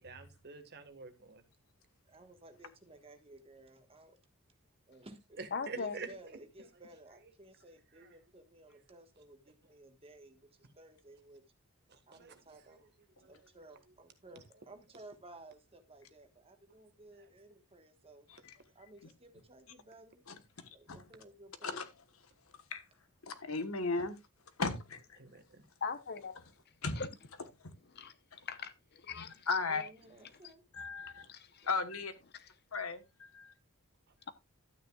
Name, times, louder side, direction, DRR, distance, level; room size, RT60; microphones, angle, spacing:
voice 1, 0.0-1.4 5.4-6.4 8.0-8.1 8.7-8.8 11.9-12.8 13.2-13.4 17.1-17.3 18.2-18.3 25.2-25.6, right 4 dB, 50° right, 1.5 m, -48 dB
voice 2, 2.0-4.2 4.9-5.4 5.8-11.4 12.1-12.9 13.3-18.3 18.7-20.2 20.7-21.8 29.6-30.6, right 2 dB, 25° right, 1.4 m, -56 dB
voice 3, 5.5-6.0 25.8-26.4 27.0-27.1 27.9-28.1 28.5-29.5 31.3-31.7 32.3-32.4, left 5 dB, 50° left, 0.8 m, -40 dB
voice 4, 20.3-21.0 21.6-21.8 22.7-22.8 23.3-24.2 24.6-25.2 26.8-27.1 27.6-27.7 29.2-29.8 30.7-31.3 31.6-32.1 32.7-33.5, left 4 dB, 75° left, 1.3 m, -36 dB
12.5 x 9.1 x 2.3 m
head